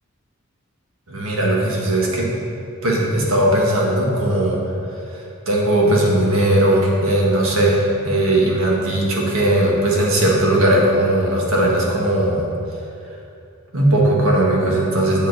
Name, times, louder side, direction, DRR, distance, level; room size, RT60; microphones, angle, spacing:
voice 1, 1.1-2.3 2.8-4.6 5.5-12.5 13.7-15.3, right 1 dB, 70° right, -2 dB, 1.5 m, -18 dB
7.4 x 7.2 x 4.0 m, 2.6 s
head